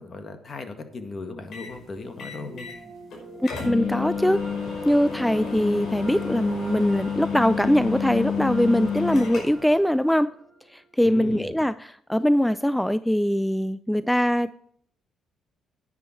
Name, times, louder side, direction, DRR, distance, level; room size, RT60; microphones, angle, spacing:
voice 1, 0.0-2.7 11.0-11.6, left 3 dB, 45° left, 7 dB, 1.9 m, -37 dB
sound 1, 1.5-1.8 2.2-2.8 3.1-3.2 3.4-9.7, left 6 dB, 65° left, 5.3 m, -30 dB
sound 2, 2.0-11.1, right 2 dB, 35° right, 4.2 m, -45 dB
voice 2, 3.4-4.4 4.8-10.3 10.7-14.5, equal, 5° left, 15 dB, 0.3 m, -22 dB
10.5 x 9.5 x 4.4 m, 0.66 s
cardioid pair, 90°, 0 cm